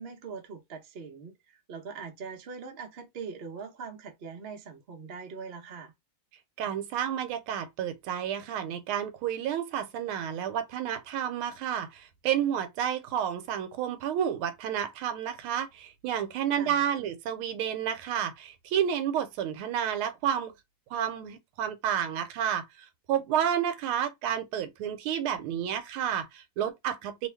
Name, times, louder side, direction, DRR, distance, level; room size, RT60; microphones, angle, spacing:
voice 1, 0.0-5.9 16.5-16.8, right 5 dB, 65° right, 0.6 m, -42 dB
voice 2, 6.6-20.5 20.9-27.3, right 9 dB, 85° right, 1.5 m, -30 dB
3.3 x 2.4 x 3.3 m
omnidirectional pair, 2.4 m